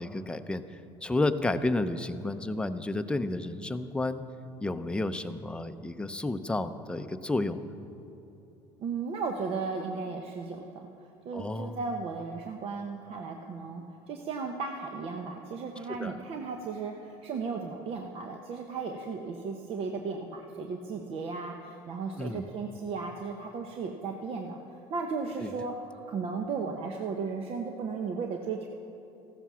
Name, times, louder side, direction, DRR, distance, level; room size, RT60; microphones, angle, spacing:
voice 1, 0.0-4.2 4.6-7.6 11.3-11.8 16.0-16.2 22.2-22.5 25.4-25.5, left 2 dB, 10° left, 8 dB, 0.7 m, -31 dB
voice 2, 8.8-28.7, right 4 dB, 50° right, 3 dB, 1.0 m, -35 dB
15.0 x 13.0 x 6.3 m, 3.0 s
supercardioid pair, 110°, 13 cm